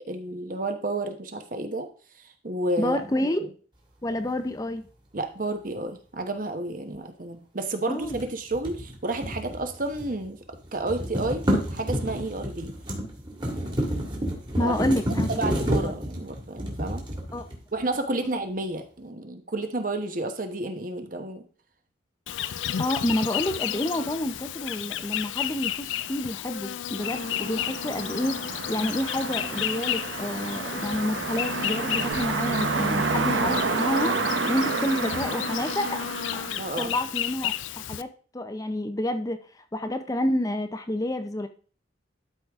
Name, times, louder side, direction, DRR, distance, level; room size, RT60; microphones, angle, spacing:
voice 1, 0.1-1.9 2.2-3.0 3.4-3.5 5.1-12.7 13.5-13.8 14.6-14.8 15.3-17.0 17.7-21.4 36.6-36.9, right 2 dB, 45° right, 7 dB, 1.1 m, -31 dB
voice 2, 2.8-3.4 4.0-4.8 7.9-8.2 14.6-15.3 15.6-15.9 17.3-17.4 22.8-34.1 34.5-36.0 36.3-36.5 36.8-37.5 37.9-38.1 38.3-39.4 39.7-41.5, left 1 dB, 20° left, 8 dB, 0.5 m, -29 dB
sound 1, 8.0-10.3 10.5-17.8, equal, 25° right, 1.9 m, -30 dB
Insect, 22.3-38.0, left 10 dB, 85° left, 0.4 m, -32 dB
sound 2, 27.0-37.2, right 4 dB, 75° right, 0.8 m, -30 dB
12.0 x 4.9 x 3.5 m, 0.40 s
head